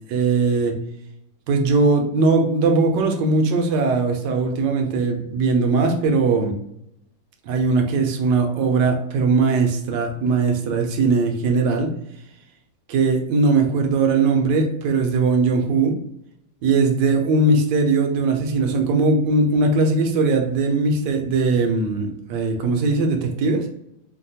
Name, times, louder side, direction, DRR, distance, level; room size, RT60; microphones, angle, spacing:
voice 1, 0.1-0.8 1.5-6.6 7.5-11.9 12.9-16.0 16.6-23.7, right 3 dB, 75° right, 3 dB, 1.1 m, -20 dB
3.2 x 2.2 x 2.7 m, 0.77 s
omnidirectional pair, 2.1 m